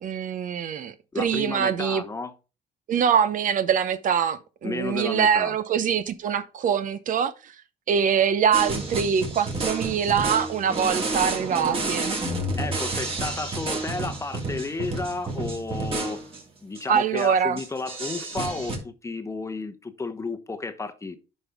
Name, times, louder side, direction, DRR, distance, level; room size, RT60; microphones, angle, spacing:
voice 1, 0.0-2.0 2.9-7.5 7.9-12.1 16.9-17.6, right 7 dB, 50° right, 0.7 m, -24 dB
voice 2, 1.1-2.3 4.6-5.5 12.6-16.2 16.6-21.2, left 3 dB, 15° left, 0.9 m, -32 dB
sound 1, 8.5-16.4 16.7-16.8 17.2-17.3 17.6-18.8, right 2 dB, 35° right, 2.7 m, -30 dB
9.6 x 5.4 x 3.5 m
cardioid pair, 110°, 17 cm